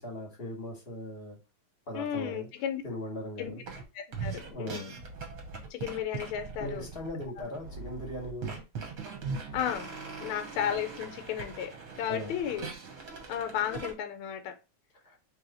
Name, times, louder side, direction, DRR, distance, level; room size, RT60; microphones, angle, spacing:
voice 1, 0.0-1.4 1.9-2.5 2.8-3.6 4.4-4.9 6.6-8.5 10.2-10.3 12.1-12.3 15.0-15.2, left 1 dB, 35° left, 1.1 m, -39 dB
voice 2, 1.9-2.8 3.4-3.6 3.9-4.9 5.7-6.9 7.4-7.5 9.5-9.9 10.2-12.7 13.3-14.6, left 9 dB, 75° left, 1.4 m, -34 dB
sound 1, 3.7-3.8 4.1-13.9, right 4 dB, 50° right, 1.1 m, -40 dB
3.3 x 3.1 x 3.9 m
omnidirectional pair, 2.4 m